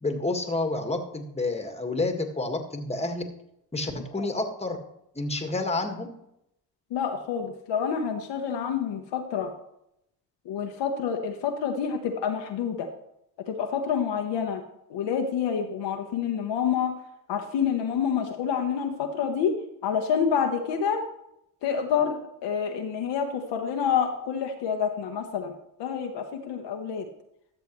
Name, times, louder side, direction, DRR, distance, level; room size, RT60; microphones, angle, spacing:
voice 1, 0.0-3.2 3.7-4.8 5.1-6.1, left 2 dB, 15° left, 5 dB, 1.7 m, -29 dB
voice 2, 6.9-9.5 10.4-12.9 13.5-14.6 14.9-16.9 17.3-21.0 21.6-25.5 25.8-27.1, left 7 dB, 65° left, 4 dB, 1.1 m, -28 dB
13.0 x 6.9 x 3.1 m, 0.79 s
hypercardioid pair, 55°, 46 cm